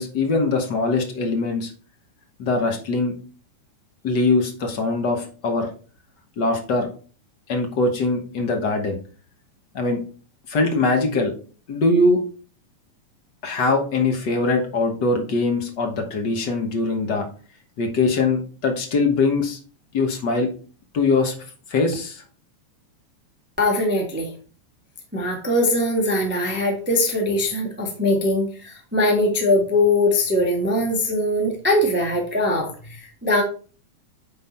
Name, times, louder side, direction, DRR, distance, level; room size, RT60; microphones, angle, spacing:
voice 1, 0.0-1.7 2.4-3.1 4.0-5.7 6.4-6.9 7.5-9.0 9.7-10.0 10.5-11.3 11.7-12.2 13.4-17.3 17.8-19.6 19.9-20.5 20.9-21.3 21.7-22.2, left 3 dB, 55° left, 4 dB, 1.2 m, -22 dB
voice 2, 23.6-24.3 25.1-33.4, left 1 dB, 10° right, 0 dB, 0.5 m, -21 dB
9.3 x 4.0 x 4.3 m, 0.39 s
omnidirectional pair, 3.5 m